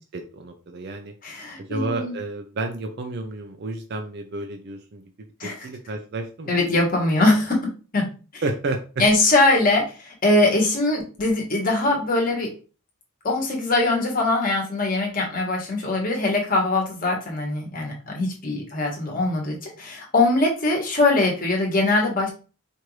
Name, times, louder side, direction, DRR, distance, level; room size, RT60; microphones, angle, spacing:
voice 1, 0.1-1.1 1.6-5.0 5.4-6.6 8.4-8.8, right 2 dB, 45° right, 5 dB, 0.4 m, -31 dB
voice 2, 1.2-2.2 5.4-5.7 6.5-7.6 7.9-8.1 8.3-8.4 9.0-12.5 13.2-22.3, left 2 dB, 40° left, -1 dB, 1.2 m, -22 dB
4.5 x 2.5 x 3.1 m, 0.35 s
head